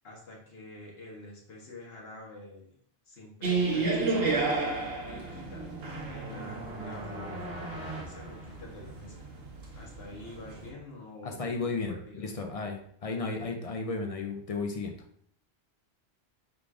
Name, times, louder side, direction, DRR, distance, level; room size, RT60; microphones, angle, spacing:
voice 1, 0.0-2.8 3.1-4.5 5.1-9.4 9.7-12.3, left 2 dB, 70° left, -2 dB, 1.4 m, -47 dB
sound 1, 3.4-10.7, right 3 dB, 65° right, 1.1 m, -32 dB
sound 2, 4.3-9.2, right 2 dB, 85° right, 1.2 m, -42 dB
voice 2, 11.2-14.9, left 3 dB, 50° left, 4 dB, 0.4 m, -34 dB
3.7 x 2.5 x 4.6 m, 0.63 s
omnidirectional pair, 1.1 m